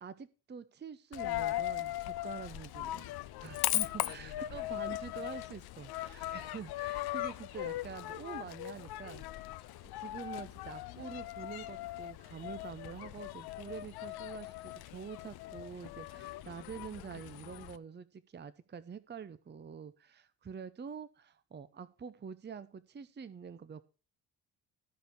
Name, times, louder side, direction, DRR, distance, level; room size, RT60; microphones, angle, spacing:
voice 1, 0.0-3.1 3.4-23.8, right 6 dB, 20° right, 0.8 m, -46 dB
Coin (dropping), 1.1-17.8, left 15 dB, 55° left, 0.7 m, -39 dB
14.0 x 5.2 x 6.2 m
figure-of-eight pair, 45°, 47 cm